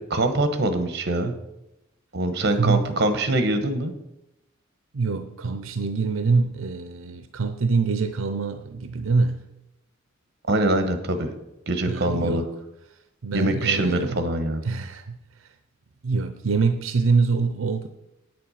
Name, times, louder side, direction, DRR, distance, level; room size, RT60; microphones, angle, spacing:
voice 1, 0.1-1.3 2.1-3.9 10.5-11.3 11.7-12.4 13.3-14.6, right 1 dB, 55° right, 9 dB, 1.2 m, -23 dB
voice 2, 2.5-2.9 4.9-9.4 11.9-12.5 13.2-14.2 14.6-15.2 16.0-17.9, right 4 dB, 85° right, 9 dB, 0.6 m, -24 dB
9.1 x 7.7 x 5.7 m, 0.92 s
head